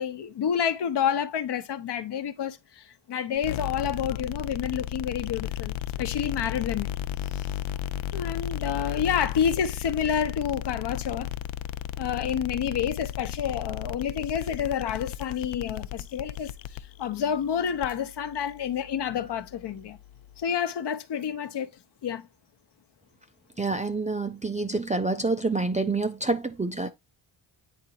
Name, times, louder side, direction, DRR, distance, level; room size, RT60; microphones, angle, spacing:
voice 1, 0.0-6.9 7.3-7.4 8.1-11.3 12.0-20.0 20.4-21.7 22.0-22.3, left 8 dB, 55° left, 0.9 m, -29 dB
sound 1, 3.4-20.4, left 11 dB, 70° left, 0.5 m, -35 dB
voice 2, 23.6-26.9, right 3 dB, 15° right, 0.4 m, -27 dB
9.0 x 3.8 x 2.8 m
cardioid pair, 120°, 48 cm